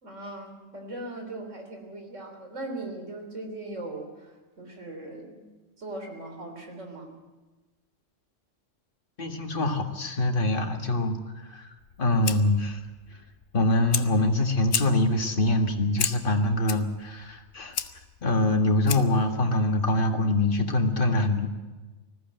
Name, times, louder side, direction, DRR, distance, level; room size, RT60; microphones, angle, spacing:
voice 1, 0.0-4.3 4.6-5.4 5.8-7.1, right 2 dB, 75° right, 3 dB, 4.0 m, -39 dB
voice 2, 9.2-11.7 12.0-12.8 13.5-17.8 18.2-21.5, left 1 dB, 45° left, 4 dB, 2.0 m, -24 dB
Fire, 11.8-19.3, left 7 dB, 65° left, 1.2 m, -35 dB
20.0 x 15.0 x 9.2 m, 1.2 s
omnidirectional pair, 1.3 m